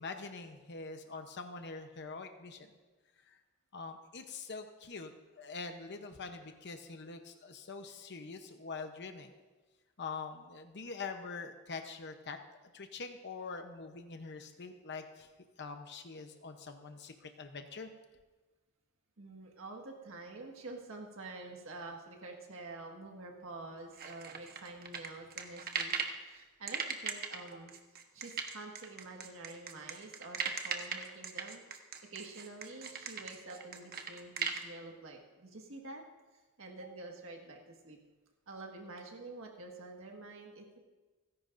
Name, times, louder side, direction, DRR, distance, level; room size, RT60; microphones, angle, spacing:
voice 1, 0.0-2.7 3.3-3.4 3.7-9.3 10.0-12.4 12.7-15.3 15.6-17.9, left 4 dB, 50° left, 6 dB, 0.8 m, -44 dB
voice 2, 19.2-27.8 28.1-31.6 32.1-36.0 36.6-38.0 38.5-40.8, right 2 dB, 65° right, 1 dB, 1.7 m, -48 dB
sound 1, 24.0-26.2 26.7-34.6, right 6 dB, 45° right, 1.2 m, -38 dB
30.0 x 10.5 x 2.6 m, 1.3 s
head